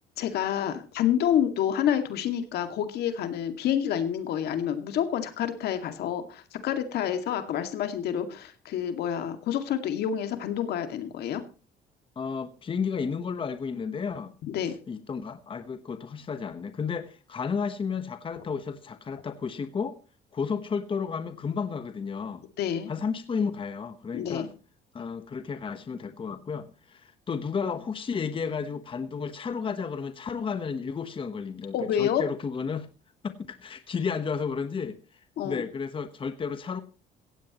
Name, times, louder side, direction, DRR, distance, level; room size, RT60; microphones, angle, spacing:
voice 1, 0.2-11.4 14.4-14.8 22.6-22.9 24.1-24.5 31.7-32.2 35.4-35.6, left 9 dB, 70° left, 8 dB, 2.2 m, -28 dB
voice 2, 12.2-14.3 14.9-20.0 20.3-22.4 22.9-24.5 24.9-32.9 33.2-36.8, left 5 dB, 30° left, 10 dB, 1.2 m, -32 dB
16.5 x 16.0 x 3.0 m, 0.34 s
cardioid pair, 110°, 17 cm